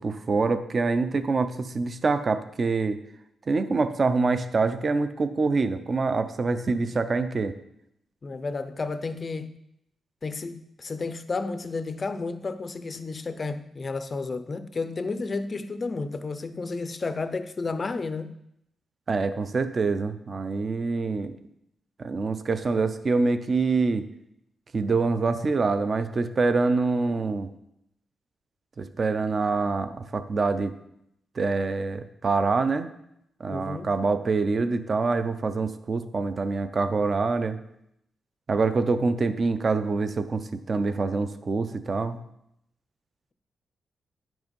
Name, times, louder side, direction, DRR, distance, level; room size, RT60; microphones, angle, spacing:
voice 1, 0.0-3.0 3.5-7.5 19.1-21.4 22.0-24.0 24.7-27.5 28.8-30.7 31.4-32.9 33.4-37.6 38.5-42.2, right 4 dB, 30° right, 0.5 m, -25 dB
voice 2, 8.2-9.5 10.2-18.4 33.5-33.9, left 3 dB, 30° left, 0.5 m, -32 dB
9.8 x 6.2 x 5.3 m
wide cardioid pair, 175°, 0 cm